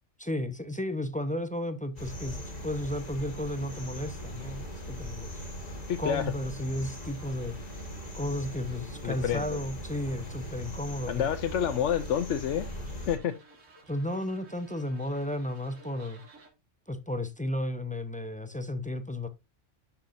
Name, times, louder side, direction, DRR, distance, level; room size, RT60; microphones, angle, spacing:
voice 1, 0.2-7.6 8.1-11.3 13.9-16.2 16.9-19.3, left 1 dB, 10° left, 0.5 m, -33 dB
sound 1, 2.0-13.2, equal, 35° left, 1.4 m, -40 dB
sound 2, 2.0-16.5, right 2 dB, 85° right, 2.1 m, -56 dB
voice 2, 5.9-6.3 9.0-9.6 11.1-12.7 13.1-13.4, left 9 dB, 75° left, 1.0 m, -28 dB
12.0 x 5.7 x 2.6 m
omnidirectional pair, 1.3 m